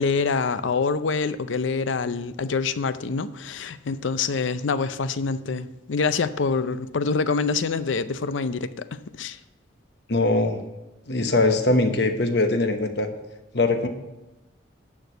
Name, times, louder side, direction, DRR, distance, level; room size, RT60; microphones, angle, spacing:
voice 1, 0.0-9.4, left 4 dB, 75° left, 0.5 m, -26 dB
voice 2, 10.1-10.6 11.1-13.1 13.5-13.9, left 2 dB, 60° left, 1.0 m, -21 dB
11.5 x 4.5 x 8.0 m
head